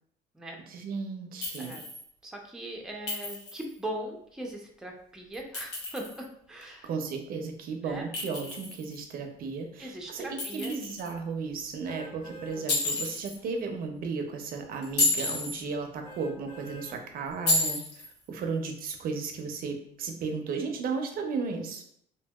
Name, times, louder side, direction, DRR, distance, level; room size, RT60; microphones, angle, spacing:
voice 1, 0.7-1.8 6.8-21.8, right 4 dB, 60° right, 4 dB, 0.5 m, -34 dB
Chink clink, 1.4-2.0 3.1-3.7 5.3-6.2 8.1-9.0 10.4-11.1 12.7-13.4 14.8-15.6 17.5-18.1, left 2 dB, 80° left, 1.0 m, -30 dB
voice 2, 2.2-6.9 7.8-8.1 9.8-10.8 12.2-12.6, right 1 dB, 5° right, 0 dB, 0.5 m, -40 dB
sound 1, 11.8-12.6 13.1-13.2 16.0-17.0 17.5-17.6, right 2 dB, 60° left, 1.3 m, -45 dB
2.7 x 2.6 x 2.2 m, 0.66 s
cardioid pair, 110°, 17 cm